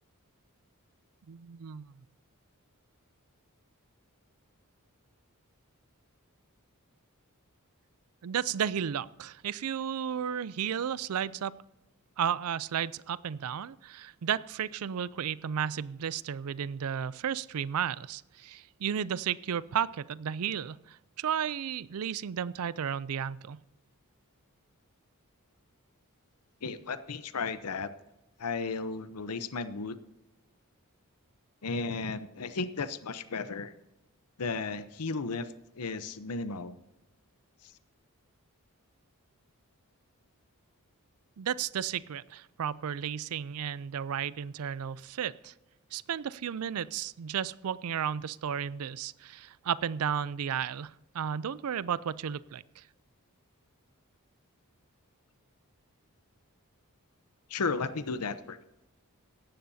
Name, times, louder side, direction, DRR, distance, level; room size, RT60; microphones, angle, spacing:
voice 1, 1.3-2.0 8.2-11.5 12.2-23.6 41.4-45.5 45.9-52.8, right 8 dB, 75° right, 20 dB, 0.4 m, -33 dB
voice 2, 26.6-27.9 28.4-30.0 31.6-33.7 34.4-36.8 57.5-58.6, left 4 dB, 90° left, 12 dB, 0.7 m, -34 dB
17.0 x 12.5 x 2.7 m, 0.92 s
head